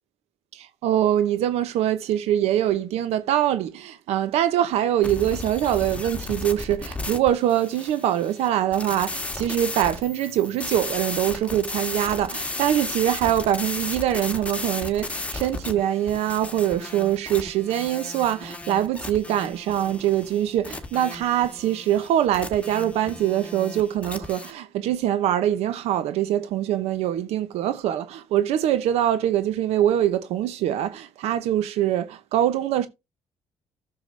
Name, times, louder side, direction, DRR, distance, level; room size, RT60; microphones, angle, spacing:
voice 1, 0.5-32.9, right 11 dB, 85° right, 0.9 m, -23 dB
sound 1, 5.0-24.5, left 2 dB, 10° left, 1.7 m, -35 dB
13.5 x 6.7 x 3.3 m
cardioid pair, 110°, 10 cm